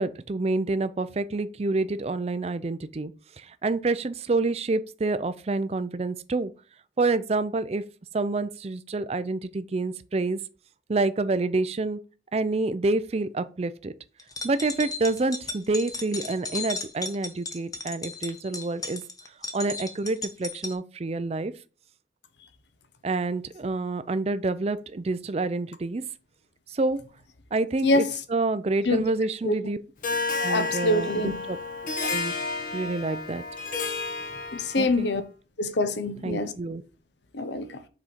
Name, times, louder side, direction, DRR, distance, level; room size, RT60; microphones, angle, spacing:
voice 1, 0.0-3.1 3.4-6.5 7.0-7.8 8.1-10.4 10.9-12.0 12.3-13.9 14.4-19.0 19.5-21.5 23.0-26.0 26.7-27.0 27.5-29.8 30.4-31.6 32.0-32.3 32.7-33.4 34.8-35.1 36.2-36.8, right 3 dB, 35° right, 0.4 m, -28 dB
sound 1, 14.2-20.7, left 3 dB, 20° left, 0.8 m, -35 dB
Harp, 30.0-35.0, left 3 dB, 50° left, 1.2 m, -31 dB
voice 2, 30.5-31.4 34.5-35.2 35.6-36.5 37.3-37.8, left 2 dB, 70° left, 0.8 m, -25 dB
6.1 x 4.3 x 5.0 m
head